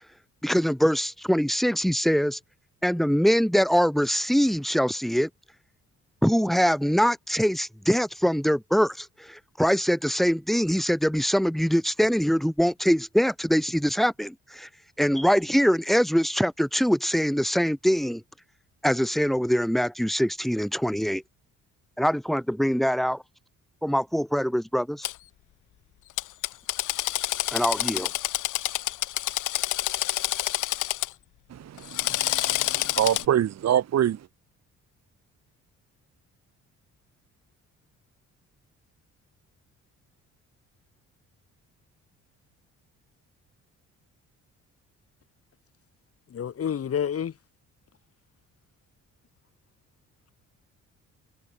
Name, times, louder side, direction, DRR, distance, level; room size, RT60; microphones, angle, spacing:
voice 1, 0.4-2.4 2.8-5.3 6.2-14.7 15.0-18.2 18.8-21.2 22.0-23.2 23.8-25.1 27.5-28.1, equal, ahead, 3.4 m, -23 dB
Drill, 25.0-25.1 26.2-31.1 31.8-33.2, left 15 dB, 85° left, 2.0 m, -28 dB
voice 2, 31.5-34.2, right 10 dB, 60° right, 1.6 m, -26 dB
voice 3, 46.3-47.3, left 8 dB, 50° left, 2.1 m, -28 dB
cardioid pair, 90°, 30 cm